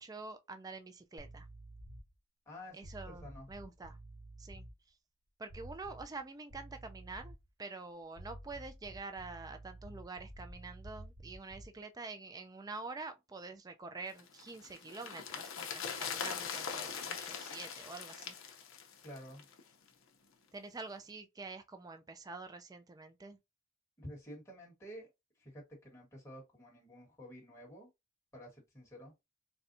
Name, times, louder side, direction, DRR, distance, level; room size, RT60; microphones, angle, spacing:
voice 1, 0.0-1.5 2.7-4.0 4.4-4.7 5.4-18.4 20.5-23.4, right 3 dB, 20° right, 0.3 m, -47 dB
sound 1, 1.2-2.1 2.8-4.7 5.5-6.2 6.5-7.5 8.1-11.8, right 1 dB, 45° right, 1.2 m, -51 dB
voice 2, 2.5-3.5 19.0-19.4 24.0-25.1 25.4-27.9 28.3-29.1, equal, 15° left, 1.4 m, -50 dB
sound 2, 14.2-19.6 19.9-20.0, left 6 dB, 70° left, 0.7 m, -41 dB
4.1 x 2.3 x 2.6 m
head